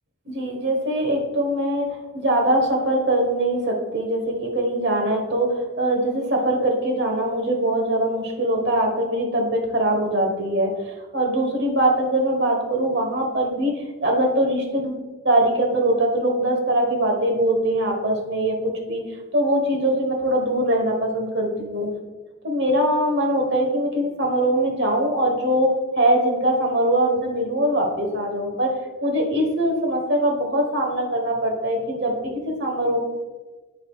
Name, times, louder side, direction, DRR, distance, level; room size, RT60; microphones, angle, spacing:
voice 1, 0.3-19.0 19.3-21.9 22.4-28.8 29.0-33.0, right 1 dB, 50° right, 2 dB, 1.2 m, -22 dB
8.4 x 7.8 x 2.3 m, 1.3 s
head